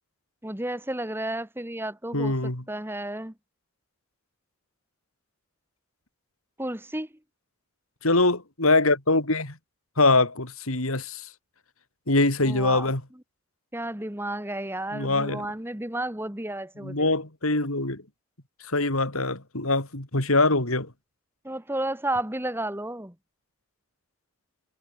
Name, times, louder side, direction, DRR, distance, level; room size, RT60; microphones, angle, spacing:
voice 1, 0.4-2.3 2.7-3.3 6.6-7.1 12.4-12.9 13.7-17.1 21.4-23.1, right 1 dB, 10° right, 1.7 m, -32 dB
voice 2, 2.1-2.6 8.0-9.6 10.0-11.3 12.1-13.0 14.9-15.5 16.8-18.0 18.7-20.9, left 2 dB, 85° left, 4.6 m, -23 dB
head